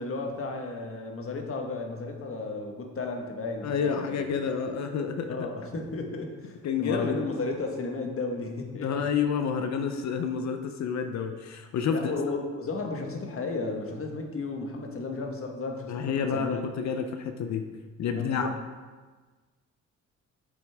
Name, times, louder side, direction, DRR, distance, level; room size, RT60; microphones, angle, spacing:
voice 1, 0.0-4.2 5.3-8.9 11.9-16.6 18.1-18.5, left 3 dB, 45° left, 3 dB, 1.5 m, -34 dB
voice 2, 3.6-5.5 6.6-7.2 8.8-12.1 15.9-17.7 18.0-18.5, left 6 dB, 65° left, 7 dB, 0.7 m, -29 dB
8.6 x 7.7 x 3.6 m, 1.4 s
cardioid pair, 90°, 30 cm